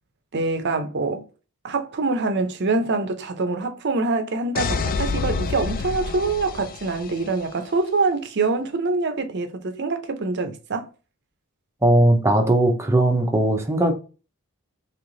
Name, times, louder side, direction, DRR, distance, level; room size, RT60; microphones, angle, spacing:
voice 1, 0.3-1.2 1.6-10.9, right 3 dB, 50° right, 0.6 m, -25 dB
sound 1, 4.6-7.4, left 4 dB, 40° left, 0.3 m, -28 dB
voice 2, 11.8-13.9, right 1 dB, 10° right, 0.6 m, -18 dB
3.1 x 3.0 x 3.8 m
head